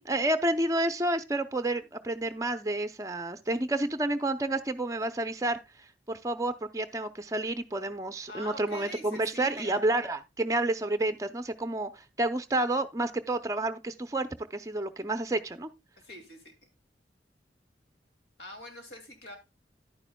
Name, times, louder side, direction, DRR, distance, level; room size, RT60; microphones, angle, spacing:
voice 1, 0.0-5.6 6.1-15.7, right 2 dB, 20° right, 0.6 m, -30 dB
voice 2, 8.3-9.8 16.0-16.5 18.4-19.4, left 1 dB, 90° left, 2.5 m, -44 dB
11.0 x 9.5 x 2.2 m
head